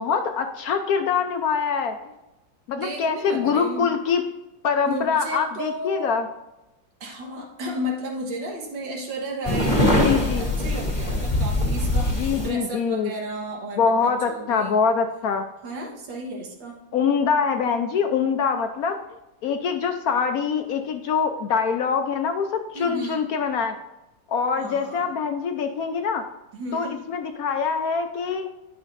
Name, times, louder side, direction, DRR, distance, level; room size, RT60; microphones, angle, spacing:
voice 1, 0.0-2.0 2.7-4.2 4.6-6.3 9.9-10.4 12.1-13.1 13.8-15.4 16.9-19.0 19.4-23.7 24.3-26.2 26.7-28.5, left 6 dB, 70° left, 6 dB, 0.9 m, -24 dB
voice 2, 2.7-3.9 4.9-6.2 7.0-9.8 10.1-14.8 15.6-16.8 22.7-23.3 24.6-25.1 26.5-27.0, right 1 dB, 75° right, 0 dB, 2.1 m, -33 dB
sound 1, 9.4-12.5, left 1 dB, 20° left, 2.1 m, -22 dB
10.5 x 6.2 x 2.6 m, 0.97 s
omnidirectional pair, 2.0 m